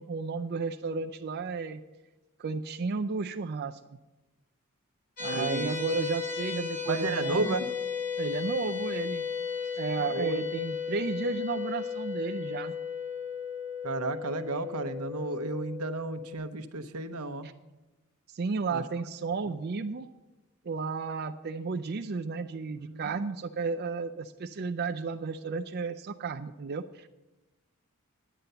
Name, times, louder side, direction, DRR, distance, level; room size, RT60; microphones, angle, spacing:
voice 1, 0.0-1.8 2.4-3.8 5.2-7.6 8.2-9.2 9.7-12.7 17.4-17.5 18.3-20.1 20.6-27.1, right 4 dB, 45° right, 6 dB, 0.4 m, -33 dB
sound 1, 5.2-16.3, left 6 dB, 40° left, 3.5 m, -35 dB
voice 2, 5.3-5.8 6.9-7.7 10.1-10.4 13.8-17.5 18.7-18.8 22.9-23.1, right 2 dB, 90° right, 8 dB, 0.9 m, -33 dB
9.9 x 9.1 x 6.8 m, 1.1 s
head